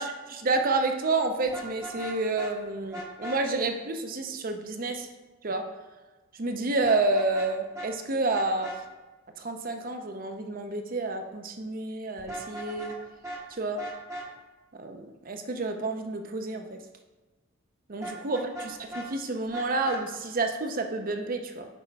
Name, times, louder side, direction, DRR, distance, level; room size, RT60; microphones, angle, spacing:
voice 1, 0.0-5.1 5.4-5.6 6.4-8.7 9.4-12.9 13.6-13.8 14.8-16.7 17.9-21.7, right 3 dB, 40° right, 5 dB, 0.7 m, -29 dB
Vehicle horn car horn honking, 1.5-2.5 2.9-3.4 6.8-7.5 7.7-7.9 8.3-8.8 12.2-13.0 13.2-13.4 13.8-14.3 18.0-19.1 19.5-20.0, right 1 dB, 15° right, 1.1 m, -38 dB
6.1 x 5.4 x 4.5 m, 1.2 s
head